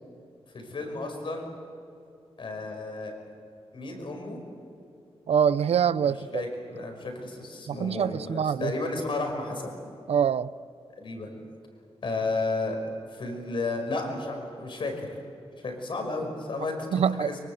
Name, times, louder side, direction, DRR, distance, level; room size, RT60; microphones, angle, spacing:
voice 1, 0.5-1.5 2.4-3.1 3.7-4.4 6.0-9.7 11.0-11.3 12.0-12.8 13.1-15.2 15.6-17.4, left 3 dB, 55° left, 4 dB, 5.6 m, -33 dB
voice 2, 5.3-6.4 7.7-8.7 10.1-10.5 16.9-17.3, right 8 dB, 80° right, 16 dB, 0.6 m, -24 dB
24.5 x 24.0 x 7.9 m, 2.6 s
wide cardioid pair, 165°, 10 cm